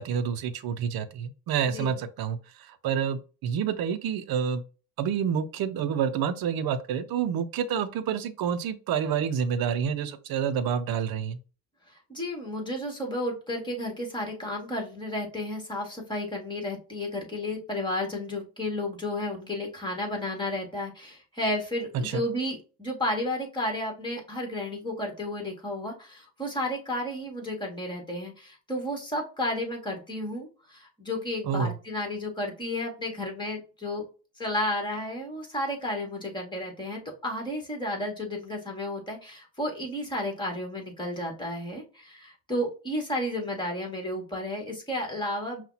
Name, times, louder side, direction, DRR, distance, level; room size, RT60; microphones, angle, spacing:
voice 1, 0.0-4.6 5.0-11.4 21.9-22.2 31.4-31.8, right 7 dB, 55° right, 0.7 m, -28 dB
voice 2, 1.6-2.0 11.9-34.0 34.4-45.6, left 1 dB, 10° left, 2.0 m, -32 dB
5.5 x 2.5 x 2.8 m
cardioid pair, 95°, 43 cm